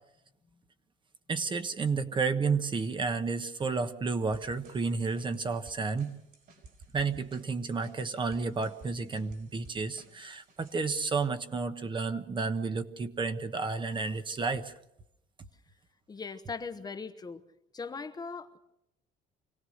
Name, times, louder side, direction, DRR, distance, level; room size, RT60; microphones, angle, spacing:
voice 1, 1.3-6.1 6.9-14.7, right 4 dB, 25° right, 9 dB, 1.1 m, -31 dB
sound 1, 4.3-11.0, right 3 dB, 55° right, 6.0 m, -56 dB
voice 2, 16.1-17.4 17.7-18.6, left 4 dB, 20° left, 9 dB, 1.0 m, -39 dB
25.5 x 17.5 x 6.5 m, 0.81 s
cardioid pair, 140°, 19 cm